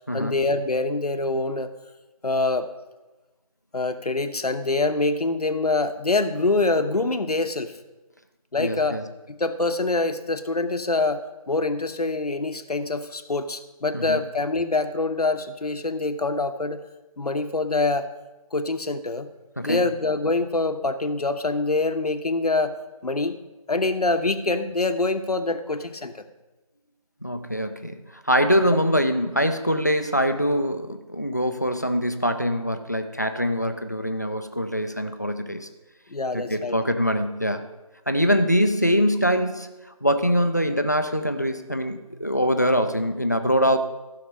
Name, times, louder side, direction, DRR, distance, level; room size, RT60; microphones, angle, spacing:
voice 1, 0.1-1.7 2.2-2.7 3.7-7.8 8.5-9.0 9.3-16.8 17.2-18.1 18.5-19.3 19.6-22.8 23.0-23.4 23.7-26.1 36.1-36.8, left 3 dB, 80° left, 9 dB, 1.0 m, -25 dB
voice 2, 8.6-9.0 13.9-14.2 19.6-19.9 27.2-28.0 28.2-35.7 36.3-37.7 38.1-39.7 40.0-43.8, equal, 30° left, 8 dB, 0.5 m, -23 dB
14.5 x 5.8 x 5.4 m, 1.1 s
figure-of-eight pair, 175°, 19 cm